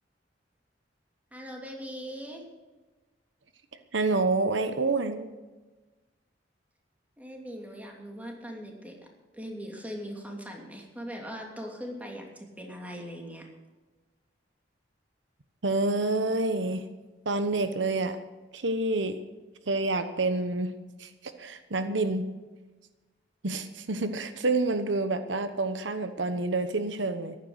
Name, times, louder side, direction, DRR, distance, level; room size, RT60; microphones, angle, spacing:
voice 1, 1.3-2.4 7.2-8.9 9.3-13.5, equal, 10° right, 0 dB, 2.8 m, -40 dB
voice 2, 3.9-5.3 15.6-16.9 17.2-18.2 18.5-19.2 19.7-20.7 21.0-21.1 21.4-22.3 23.4-27.4, right 2 dB, 85° right, 10 dB, 1.1 m, -28 dB
14.5 x 11.0 x 6.5 m, 1.2 s
head